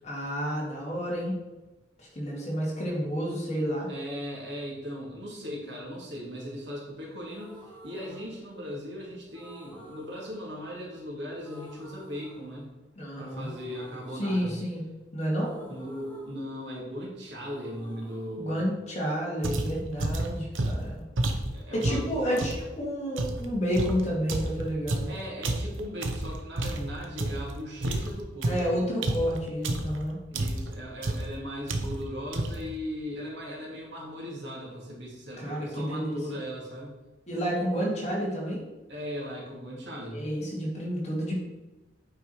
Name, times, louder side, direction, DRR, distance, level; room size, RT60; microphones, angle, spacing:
voice 1, 0.0-1.3 2.0-3.9 13.0-13.5 14.1-14.8 15.1-15.5 18.4-21.0 21.7-25.1 28.4-30.2 35.4-36.2 37.3-38.6 40.1-41.4, equal, 35° left, -4 dB, 2.4 m, -30 dB
voice 2, 3.9-7.6 7.8-12.7 13.2-14.5 15.6-18.6 21.5-22.5 25.1-28.8 30.3-37.0 38.9-40.2, equal, 60° right, -4 dB, 2.7 m, -38 dB
sound 1, 7.2-8.9 9.3-11.1 11.4-13.0 13.3-17.0 17.3-19.4, right 1 dB, 10° left, 1.4 m, -51 dB
sound 2, 19.4-22.7 23.2-27.5 27.8-30.0 30.3-30.8 31.0-31.4 31.7-32.1 32.3-32.7, right 1 dB, 85° right, 1.0 m, -30 dB
8.8 x 4.8 x 4.8 m, 1.1 s
head